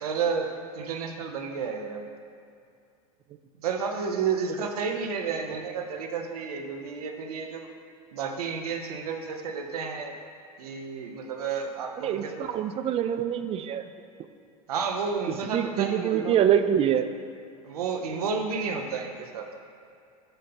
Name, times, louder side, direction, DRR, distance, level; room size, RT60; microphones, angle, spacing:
voice 1, 0.0-2.1 3.6-7.7 8.1-10.1 10.6-12.9 14.7-16.4 17.6-19.5, right 5 dB, 85° right, 4 dB, 0.7 m, -31 dB
voice 2, 12.0-13.9 15.3-17.1, right 9 dB, 30° right, 9 dB, 0.4 m, -25 dB
7.7 x 2.7 x 5.7 m, 2.5 s
hypercardioid pair, 95°, 19 cm